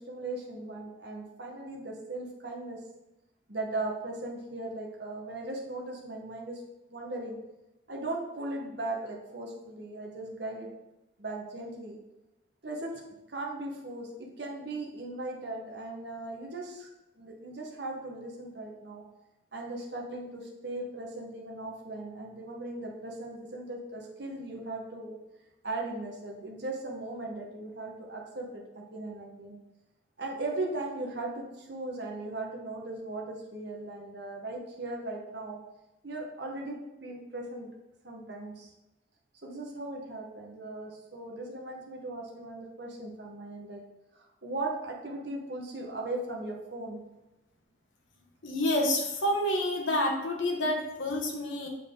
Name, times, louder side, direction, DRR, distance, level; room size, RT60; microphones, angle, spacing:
voice 1, 0.0-2.8 3.5-6.6 6.9-7.4 7.9-10.7 11.2-12.0 12.6-14.1 14.4-16.9 17.2-19.0 19.5-25.2 25.6-29.6 30.2-35.6 36.0-37.7 38.0-38.7 39.4-43.8 44.1-47.0, right 2 dB, 55° right, -1 dB, 1.1 m, -38 dB
voice 2, 48.4-51.7, left 1 dB, 75° left, 1 dB, 1.2 m, -28 dB
6.9 x 4.5 x 3.7 m, 0.97 s
head